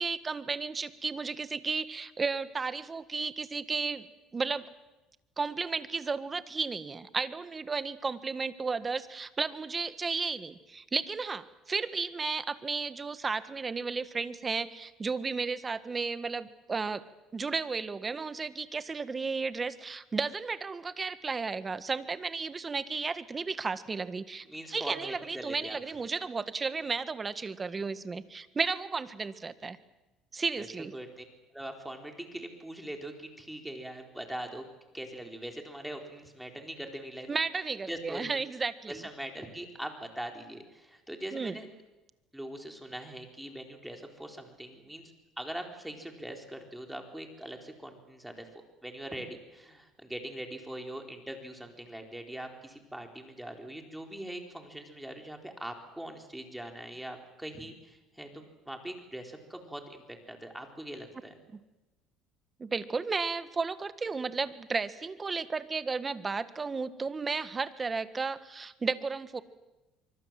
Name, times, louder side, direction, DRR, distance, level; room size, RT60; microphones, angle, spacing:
voice 1, 0.0-4.1 4.3-4.7 5.4-17.0 17.3-24.5 24.7-29.8 30.3-30.9 37.3-39.0 41.3-41.6 62.6-69.4, right 4 dB, 25° right, 12 dB, 1.6 m, -33 dB
voice 2, 24.5-25.8 30.6-30.7 30.9-31.2 31.5-34.6 34.9-37.4 37.9-38.3 38.9-41.7 42.3-45.0 45.4-48.5 48.8-61.4, right 1 dB, 5° right, 3 dB, 4.2 m, -42 dB
25.0 x 24.5 x 7.7 m, 1.1 s
supercardioid pair, 95°, 0 cm